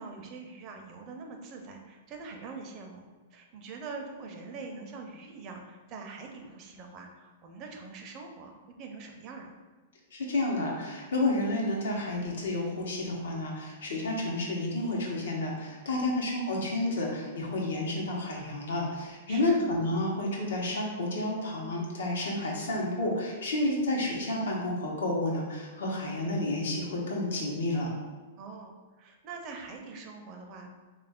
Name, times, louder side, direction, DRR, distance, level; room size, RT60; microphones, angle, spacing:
voice 1, 0.0-3.0 3.3-9.5 16.0-16.2 19.3-19.6 28.4-30.7, right 4 dB, 35° right, 2 dB, 0.4 m, -44 dB
voice 2, 10.1-27.9, left 2 dB, 85° left, -2 dB, 0.9 m, -30 dB
3.1 x 2.4 x 3.5 m, 1.3 s
hypercardioid pair, 150°, 0 cm